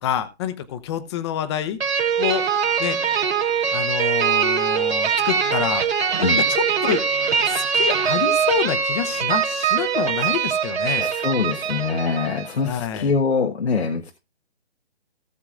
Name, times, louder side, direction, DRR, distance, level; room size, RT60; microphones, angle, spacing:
voice 1, 0.0-1.8 2.2-2.4 2.8-3.0 3.7-5.8 6.2-7.0 7.5-11.0 12.6-13.1, left 9 dB, 25° left, 11 dB, 1.0 m, -27 dB
sound 1, 1.8-12.5, right 7 dB, 60° right, 2.9 m, -22 dB
voice 2, 11.0-14.1, left 5 dB, 75° left, 2 dB, 1.4 m, -23 dB
18.0 x 7.2 x 2.5 m, 0.27 s
figure-of-eight pair, 145°, 33 cm